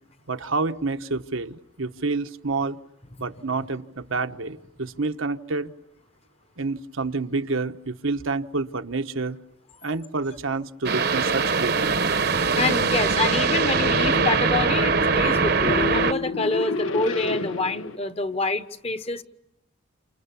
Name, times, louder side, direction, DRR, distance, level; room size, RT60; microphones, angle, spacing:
voice 1, 0.3-2.8 3.2-5.7 6.6-9.4 9.8-12.0, right 3 dB, 80° right, 1.2 m, -28 dB
sound 1, 10.8-16.1, right 4 dB, 50° right, 1.0 m, -22 dB
sound 2, 11.1-18.0, left 4 dB, 90° left, 1.3 m, -32 dB
voice 2, 12.6-19.2, left 3 dB, 30° left, 1.0 m, -27 dB
29.5 x 27.5 x 7.1 m
head